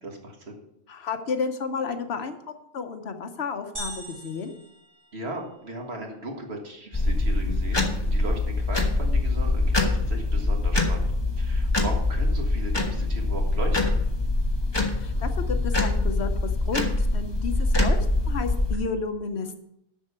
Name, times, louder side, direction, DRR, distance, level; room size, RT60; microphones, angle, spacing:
voice 1, 0.0-0.6 5.1-11.1 11.4-14.0, right 1 dB, 70° right, 1 dB, 1.9 m, -37 dB
voice 2, 0.9-2.4 2.7-4.6 15.0-16.4 16.6-18.0 18.3-19.6, left 5 dB, 70° left, 7 dB, 1.1 m, -31 dB
sound 1, 3.8-5.7, right 1 dB, 30° right, 2.8 m, -40 dB
sound 2, 6.9-18.7, left 2 dB, 25° left, 1.3 m, -24 dB
7.4 x 6.4 x 8.0 m, 0.78 s
omnidirectional pair, 1.1 m